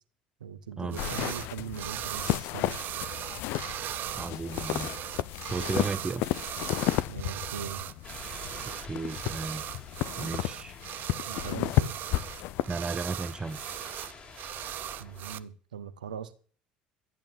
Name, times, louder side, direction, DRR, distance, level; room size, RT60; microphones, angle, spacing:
voice 1, 0.4-2.8 7.1-7.8 11.3-11.9 15.0-16.3, right 8 dB, 75° right, 1.1 m, -40 dB
sound 1, 0.9-1.5 1.7-15.4, right 12 dB, 45° right, 0.7 m, -38 dB
sound 2, 1.0-12.6, left 16 dB, 55° left, 0.7 m, -33 dB
voice 2, 4.1-4.9 5.5-6.3 8.8-9.6 10.2-10.8 12.7-13.9, right 3 dB, 20° right, 0.9 m, -34 dB
sound 3, 8.0-15.4, left 5 dB, 35° left, 4.5 m, -49 dB
13.0 x 8.8 x 7.5 m
figure-of-eight pair, 65°, 4 cm